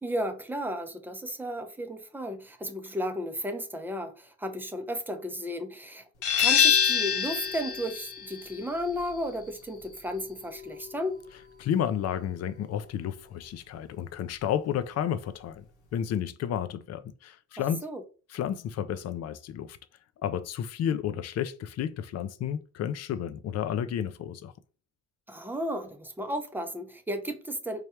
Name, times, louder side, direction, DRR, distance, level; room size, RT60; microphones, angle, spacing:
voice 1, 0.0-6.0 6.4-11.2 17.6-18.0 25.3-27.8, equal, 5° right, 0.6 m, -34 dB
sound 1, 6.2-11.6, left 8 dB, 90° left, 1.1 m, -27 dB
voice 2, 11.6-15.6 15.9-17.8 18.3-19.8 20.2-24.5, left 9 dB, 60° left, 0.5 m, -31 dB
3.2 x 2.3 x 4.3 m
cardioid pair, 90°, 30 cm